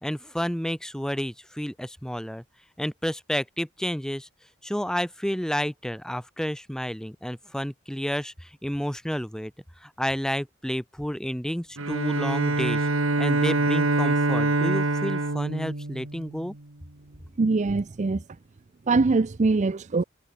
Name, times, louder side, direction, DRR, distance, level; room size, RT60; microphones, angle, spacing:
voice 1, 0.0-2.4 2.8-4.3 4.6-9.5 9.8-12.9 13.2-16.5, equal, 5° left, 1.3 m, -30 dB
Bowed string instrument, 11.8-16.6, right 2 dB, 85° right, 2.3 m, -25 dB
voice 2, 17.4-18.2 18.9-20.0, right 3 dB, 35° right, 0.5 m, -23 dB
head